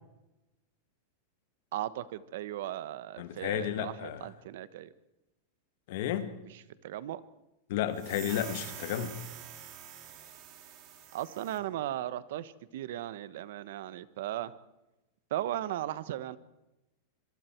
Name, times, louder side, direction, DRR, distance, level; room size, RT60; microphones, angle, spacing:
voice 1, 1.7-4.9 6.8-7.2 11.1-14.5 15.3-16.4, right 13 dB, 60° right, 1.2 m, -37 dB
voice 2, 3.2-4.3 5.9-6.3 7.7-9.2, left 11 dB, 55° left, 1.9 m, -32 dB
sound 1, 7.9-11.6, right 10 dB, 35° right, 3.3 m, -46 dB
25.5 x 23.5 x 4.6 m
supercardioid pair, 170°, 0 cm